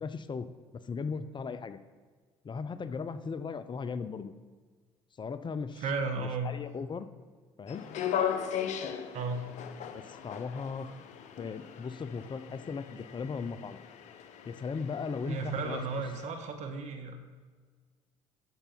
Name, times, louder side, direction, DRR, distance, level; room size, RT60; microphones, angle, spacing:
voice 1, 0.0-0.5 0.8-1.8 2.4-4.3 5.2-5.8 6.2-7.1 7.6-7.8 9.9-10.9 11.4-13.8 14.4-15.8, left 5 dB, 35° left, 12 dB, 0.7 m, -37 dB
voice 2, 5.8-6.5 9.1-9.4 15.3-17.2, right 4 dB, 60° right, 5 dB, 1.7 m, -34 dB
sound 1, 7.7-16.2, left 9 dB, 60° left, 1.0 m, -38 dB
12.5 x 6.8 x 4.6 m, 1.5 s
hypercardioid pair, 60°, 13 cm